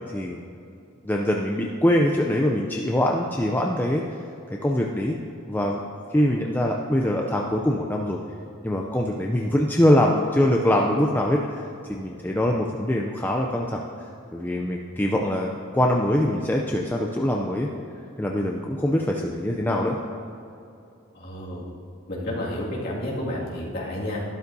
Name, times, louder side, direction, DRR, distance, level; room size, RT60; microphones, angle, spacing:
voice 1, 1.0-4.0 4.6-5.2 5.5-5.8 6.1-8.2 8.6-11.6 11.9-13.8 14.3-17.7 18.2-20.0, left 1 dB, 10° left, 0 dB, 0.4 m, -23 dB
voice 2, 21.1-21.7 22.1-24.2, left 1 dB, 45° left, -6 dB, 2.2 m, -30 dB
12.5 x 12.0 x 2.7 m, 2.7 s
head